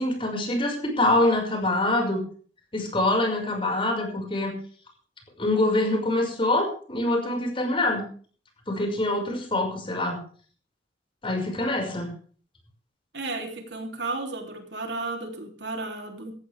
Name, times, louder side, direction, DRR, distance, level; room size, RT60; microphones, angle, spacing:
voice 1, 0.0-2.2 2.7-4.5 5.4-8.0 8.7-10.2 11.2-12.1, left 2 dB, 30° left, 3 dB, 5.8 m, -25 dB
voice 2, 13.1-16.3, right 3 dB, 75° right, 4 dB, 3.5 m, -33 dB
17.5 x 15.0 x 3.6 m, 0.43 s
head